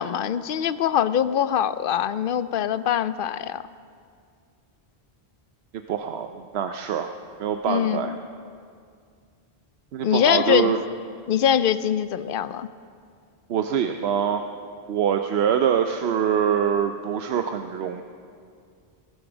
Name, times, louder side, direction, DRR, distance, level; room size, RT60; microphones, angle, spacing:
voice 1, 0.0-3.6 7.7-8.1 10.0-10.7 11.3-12.7, left 9 dB, 65° left, 14 dB, 0.7 m, -23 dB
voice 2, 5.9-7.1 7.4-8.1 9.9-10.8 13.5-14.4 14.9-18.0, right 8 dB, 85° right, 6 dB, 0.9 m, -24 dB
18.5 x 11.0 x 6.1 m, 2.3 s
omnidirectional pair, 1.0 m